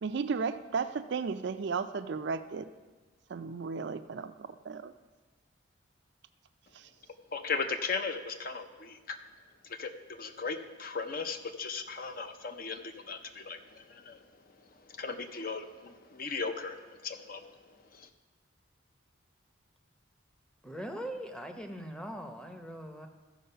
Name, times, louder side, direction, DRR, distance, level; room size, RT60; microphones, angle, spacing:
voice 1, 0.0-2.7 3.3-4.3 4.6-4.9, right 5 dB, 60° right, 10 dB, 0.4 m, -34 dB
voice 2, 7.3-9.2 9.8-14.2 14.9-17.5 17.9-18.1, left 4 dB, 45° left, 8 dB, 0.6 m, -37 dB
voice 3, 20.6-23.1, equal, 5° left, 5 dB, 0.7 m, -41 dB
14.0 x 4.7 x 5.6 m, 1.3 s
head